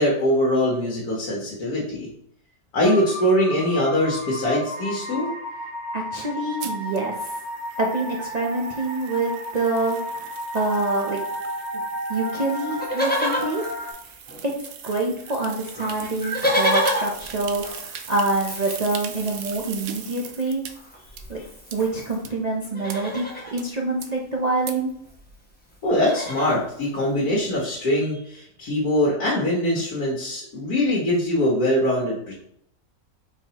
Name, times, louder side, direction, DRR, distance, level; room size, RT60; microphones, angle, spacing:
voice 1, 0.0-2.1 2.7-5.3 25.8-32.3, left 1 dB, 80° left, -5 dB, 1.7 m, -22 dB
sound 1, 2.8-13.9, left 1 dB, 30° right, 1.7 m, -33 dB
voice 2, 5.9-7.4 7.8-11.2 11.7-11.8 12.1-13.6 14.4-14.5 14.8-20.6 21.3-21.4 21.7-23.3 23.5-24.9, right 2 dB, 55° right, -1 dB, 0.4 m, -26 dB
sound 2, 6.6-20.7 21.2-21.3 21.7-21.8 22.2-22.3 22.9-23.0 23.6-23.7 24.0-24.1 24.7-24.8, right 9 dB, 75° right, 0.9 m, -40 dB
Livestock farm animals working animals, 12.7-14.7 14.9-15.0 15.3-22.2 22.6-23.6 24.8-24.9 25.1-25.3 25.7-26.6 27.3-27.4, equal, 10° left, 0.8 m, -30 dB
4.6 x 4.0 x 2.9 m, 0.70 s
omnidirectional pair, 1.6 m